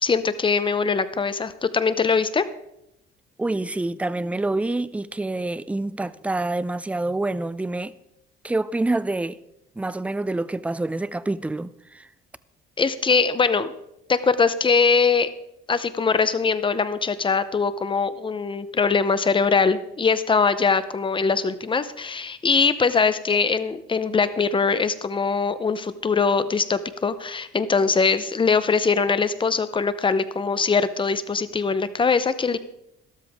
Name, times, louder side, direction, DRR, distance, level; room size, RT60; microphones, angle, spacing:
voice 1, 0.0-2.4 12.8-13.7 14.1-15.3 15.7-32.6, left 5 dB, 25° left, 0.7 m, -22 dB
voice 2, 3.4-7.9 8.4-9.4 9.8-12.1, right 2 dB, 5° right, 0.4 m, -27 dB
13.0 x 13.0 x 3.6 m
cardioid pair, 115°, 21 cm